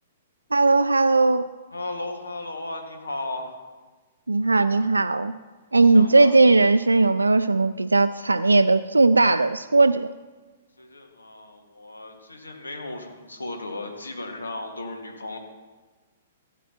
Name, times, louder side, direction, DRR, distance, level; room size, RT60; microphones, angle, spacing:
voice 1, 0.5-1.5 4.3-5.3 5.7-10.1, right 3 dB, 90° right, 11 dB, 0.3 m, -18 dB
voice 2, 1.7-3.6 5.9-6.3 10.8-15.4, left 2 dB, 85° left, 3 dB, 1.7 m, -35 dB
16.0 x 9.9 x 2.9 m, 1.3 s
figure-of-eight pair, 115°, 0 cm